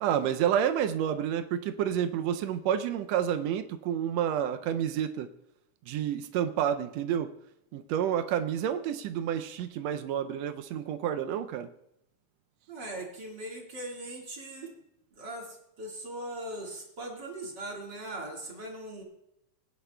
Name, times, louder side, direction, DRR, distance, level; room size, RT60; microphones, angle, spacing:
voice 1, 0.0-5.3 5.9-7.3 7.7-11.7, right 9 dB, 85° right, 9 dB, 1.5 m, -29 dB
voice 2, 12.7-14.7 15.1-19.0, right 1 dB, 40° right, -1 dB, 2.1 m, -40 dB
20.5 x 10.0 x 2.2 m, 0.82 s
omnidirectional pair, 3.6 m